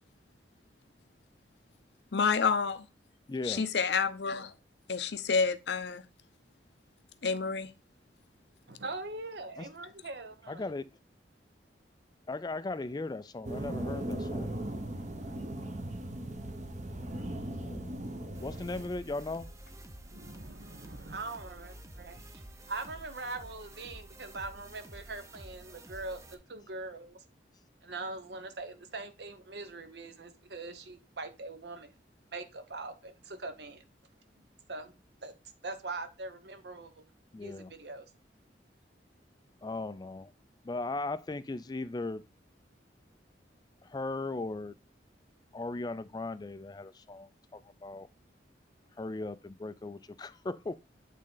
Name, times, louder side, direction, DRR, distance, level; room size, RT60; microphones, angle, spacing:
voice 1, 2.1-2.9 3.4-4.5 4.9-6.0 7.2-7.7, left 5 dB, 70° left, 0.6 m, -29 dB
voice 2, 3.3-3.7 9.6-9.7 10.5-10.9 12.3-14.8 17.6-17.9 18.4-19.5 37.3-37.7 39.6-40.3 40.6-42.2 43.8-44.7 45.5-48.1 49.0-50.8, left 2 dB, 20° left, 0.3 m, -37 dB
voice 3, 8.7-10.7 20.0-27.2 27.8-31.9 32.3-33.8 34.4-34.9 35.2-35.4 35.6-37.1 37.4-38.0, right 3 dB, 65° right, 1.0 m, -42 dB
sound 1, 13.4-18.8, right 1 dB, 40° right, 1.0 m, -38 dB
sound 2, 18.3-26.3, right 1 dB, 15° right, 0.7 m, -50 dB
8.5 x 3.7 x 3.9 m
head